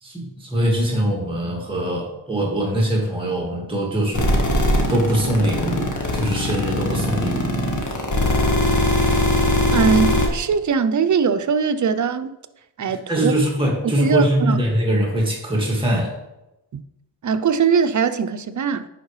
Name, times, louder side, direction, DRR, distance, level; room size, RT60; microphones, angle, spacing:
voice 1, 0.0-4.3 4.9-7.7 13.1-16.1, right 1 dB, 10° right, -3 dB, 1.9 m, -22 dB
sound 1, 4.2-10.3, left 1 dB, 45° left, 1.6 m, -19 dB
voice 2, 9.7-12.3 12.8-13.4 14.0-14.6 16.7-16.8 17.2-18.9, right 6 dB, 45° right, 11 dB, 0.5 m, -21 dB
10.0 x 4.6 x 3.2 m, 0.93 s
cardioid pair, 80°, 44 cm